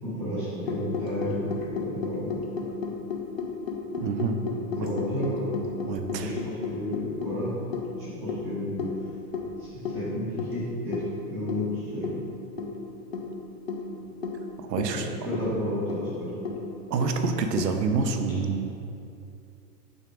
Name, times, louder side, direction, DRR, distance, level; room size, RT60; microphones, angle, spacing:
voice 1, 0.0-2.5 4.8-5.5 6.2-7.5 8.0-8.9 9.6-11.0 11.3-12.2 15.2-16.3, left 1 dB, 5° right, -13 dB, 0.6 m, -32 dB
sound 1, 0.7-17.7, left 4 dB, 45° left, 0.4 m, -34 dB
voice 2, 4.0-4.4 5.9-6.3 14.6-15.1 16.9-18.7, right 4 dB, 85° right, 5 dB, 0.9 m, -27 dB
6.5 x 3.6 x 6.0 m, 2.7 s
hypercardioid pair, 175°, 48 cm